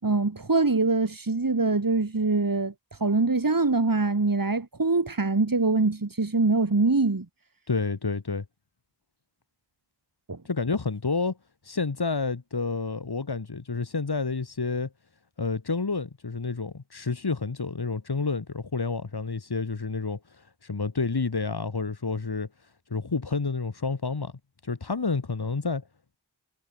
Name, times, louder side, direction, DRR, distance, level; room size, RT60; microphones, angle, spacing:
voice 1, 0.0-7.3 10.3-10.4, right 3 dB, 50° right, 5.8 m, -24 dB
voice 2, 7.7-8.4 10.4-11.4 11.6-14.9 15.4-22.5 22.9-24.3 24.6-25.8, left 4 dB, 60° left, 4.2 m, -29 dB
cardioid pair, 50°, 43 cm